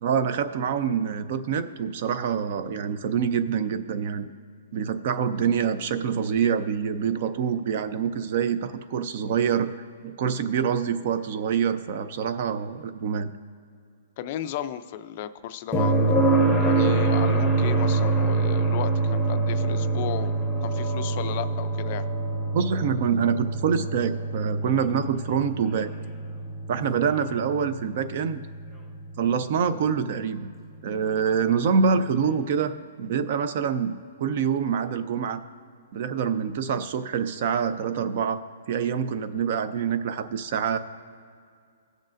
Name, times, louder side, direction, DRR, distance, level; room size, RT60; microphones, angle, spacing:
voice 1, 0.0-4.3 4.7-9.7 10.0-13.3 22.5-25.9 26.7-28.4 29.2-30.5 30.8-32.7 33.0-35.4 35.9-38.4 38.7-40.8, right 7 dB, 40° right, 12 dB, 0.5 m, -26 dB
voice 2, 14.2-15.9 16.6-20.3 20.6-22.0, left 11 dB, 35° left, 11 dB, 0.4 m, -34 dB
sound 1, 15.7-29.6 31.8-31.9, right 3 dB, 5° right, 0.9 m, -25 dB
19.0 x 6.4 x 2.5 m, 2.2 s
hypercardioid pair, 170°, 0 cm